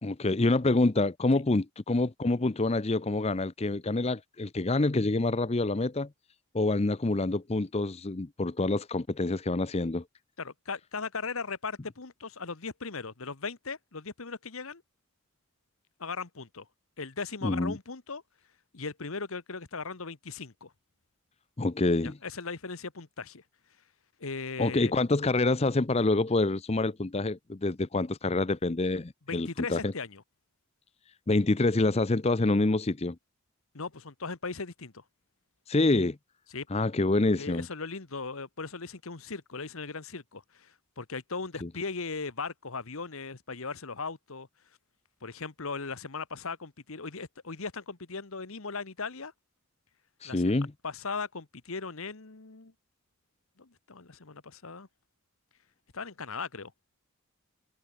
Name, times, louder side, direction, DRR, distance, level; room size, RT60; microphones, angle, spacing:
voice 1, 0.0-6.1 6.5-10.0 17.4-17.8 21.6-22.2 24.6-29.9 31.3-33.2 35.7-36.2 36.7-37.7 41.6-41.7 50.2-50.7, left 2 dB, 25° left, 0.6 m, -27 dB
voice 2, 10.4-14.8 16.0-16.7 17.0-18.2 18.7-20.7 22.0-23.4 24.2-24.9 29.3-30.2 33.7-35.0 36.5-36.7 37.4-44.5 45.2-49.3 50.2-50.5 50.8-52.7 53.6-54.9 55.9-56.7, left 4 dB, 70° left, 1.3 m, -38 dB
head